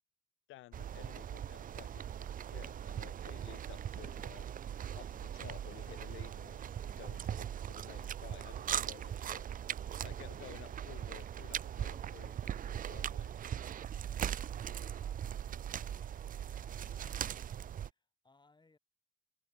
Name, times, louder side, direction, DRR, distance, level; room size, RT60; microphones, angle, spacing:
voice 1, 0.5-4.5 4.9-9.4 10.0-13.3, left 17 dB, 80° left, 0.5 m, -54 dB
sound 1, 0.7-17.9, right 9 dB, 45° right, 0.5 m, -40 dB
voice 2, 14.9-16.5 16.8-18.8, left 3 dB, 20° left, 8.0 m, -68 dB
cardioid pair, 90°, 20 cm